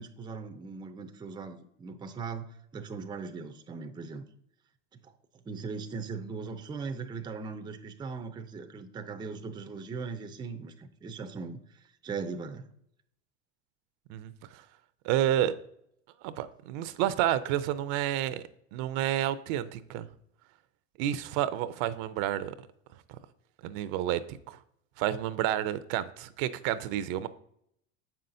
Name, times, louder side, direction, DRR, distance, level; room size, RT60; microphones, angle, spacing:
voice 1, 0.0-4.2 5.0-5.1 5.4-12.7, right 4 dB, 15° right, 7 dB, 0.4 m, -39 dB
voice 2, 14.1-14.6 15.0-15.5 16.2-18.4 18.7-20.1 21.0-22.5 23.6-24.6 25.0-27.3, right 12 dB, 60° right, 14 dB, 0.6 m, -30 dB
7.1 x 5.6 x 2.6 m, 0.72 s
supercardioid pair, 105°, 36 cm